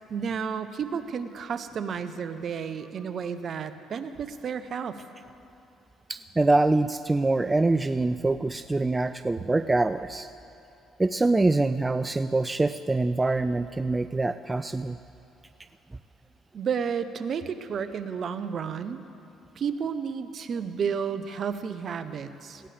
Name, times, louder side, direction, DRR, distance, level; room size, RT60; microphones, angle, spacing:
voice 1, 0.1-5.0 16.5-19.0 19.6-22.6, right 6 dB, 55° right, 11 dB, 0.8 m, -32 dB
voice 2, 6.1-10.3 11.0-15.0, right 2 dB, 20° right, 12 dB, 0.4 m, -24 dB
19.5 x 16.5 x 3.4 m, 2.7 s
supercardioid pair, 70°, 0 cm